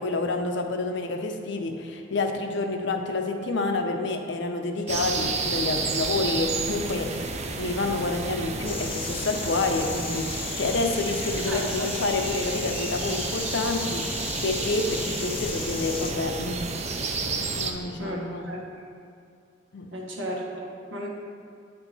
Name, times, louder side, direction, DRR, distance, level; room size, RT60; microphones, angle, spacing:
voice 1, 0.0-7.3 7.6-14.1 14.4-16.8 17.6-18.5 19.7-19.9, left 3 dB, 70° left, 5 dB, 0.6 m, -28 dB
sound 1, 4.9-17.7, right 4 dB, 35° right, 0.5 m, -31 dB
Insect, 8.7-16.1, left 6 dB, 30° left, 0.5 m, -36 dB
voice 2, 11.5-11.9 18.0-18.2 18.4-18.6 19.9-21.1, equal, 85° right, -2 dB, 1.3 m, -34 dB
8.5 x 4.5 x 4.1 m, 2.4 s
head